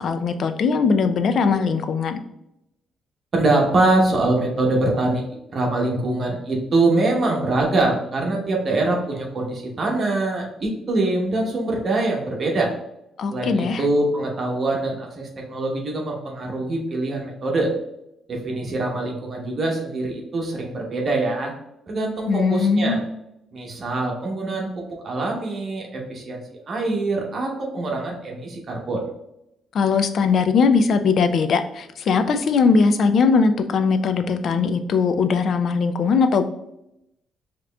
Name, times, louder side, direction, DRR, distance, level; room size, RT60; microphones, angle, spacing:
voice 1, 0.0-2.2 13.2-13.8 22.3-23.0 29.7-36.5, left 5 dB, 55° left, 9 dB, 0.4 m, -20 dB
voice 2, 3.3-5.2 5.5-12.7 13.3-17.7 18.3-21.5 21.9-23.0 23.5-29.0, right 2 dB, 40° right, 0 dB, 0.9 m, -23 dB
4.8 x 2.9 x 2.3 m, 0.82 s
cardioid pair, 110°, 0 cm